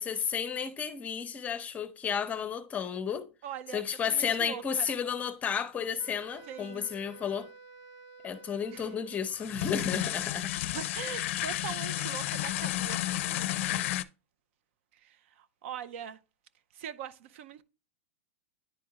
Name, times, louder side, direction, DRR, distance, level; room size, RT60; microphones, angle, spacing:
voice 1, 0.0-3.3 3.7-7.5 8.2-10.7, left 7 dB, 20° left, 0.7 m, -32 dB
voice 2, 3.4-4.9 6.5-6.9 8.7-8.9 10.7-13.9 14.9-16.2 16.7-17.6, right 9 dB, 65° right, 0.5 m, -42 dB
Wind instrument woodwind instrument, 6.0-9.4, right 4 dB, 45° right, 1.2 m, -52 dB
sound 1, 9.3-14.0, left 14 dB, 65° left, 0.4 m, -32 dB
10.0 x 3.6 x 2.9 m
supercardioid pair, 135°, 7 cm